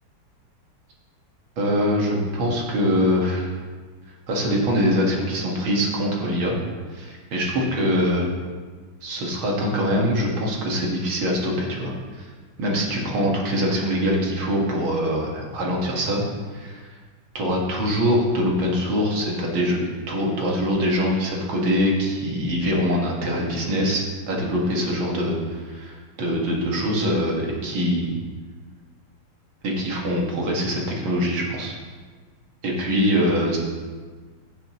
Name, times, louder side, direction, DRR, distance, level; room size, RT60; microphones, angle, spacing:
voice 1, 1.6-3.5 4.3-6.6 6.9-8.3 9.0-12.3 12.6-16.2 16.5-16.9 17.3-25.7 26.2-28.1 29.6-31.7 32.6-33.6, equal, 75° right, -2 dB, 2.6 m, -23 dB
16.0 x 7.7 x 3.1 m, 1.5 s
omnidirectional pair, 2.3 m